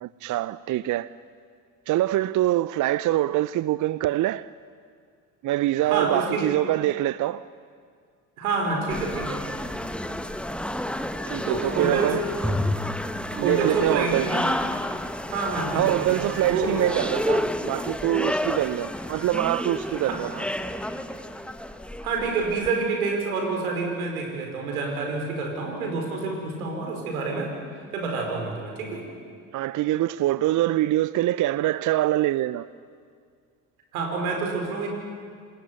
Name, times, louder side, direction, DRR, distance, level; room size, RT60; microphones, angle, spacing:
voice 1, 0.0-1.1 1.9-4.5 5.4-7.4 11.3-12.2 13.3-14.3 15.7-20.5 29.5-32.7, right 14 dB, 45° right, 0.6 m, -24 dB
voice 2, 5.8-6.4 8.4-9.4 11.3-12.2 13.3-14.4 15.3-16.2 16.5-16.8 20.1-20.2 22.0-27.5 27.9-29.0 33.9-34.9, right 4 dB, 80° right, 4.9 m, -27 dB
sound 1, 8.9-22.7, left 1 dB, ahead, 1.3 m, -30 dB
26.5 x 19.0 x 9.4 m
hypercardioid pair, 55°, 43 cm